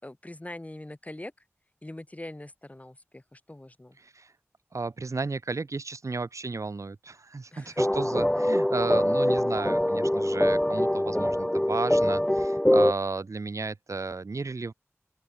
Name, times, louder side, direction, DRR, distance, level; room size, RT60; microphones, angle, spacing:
voice 1, 0.0-1.4 1.8-4.0 7.5-7.8, left 1 dB, 30° left, 3.3 m, -43 dB
voice 2, 4.7-14.7, right 3 dB, 85° right, 1.8 m, -33 dB
sound 1, 7.8-12.9, left 1 dB, 10° left, 0.6 m, -24 dB
open air
wide cardioid pair, 60°, 5 cm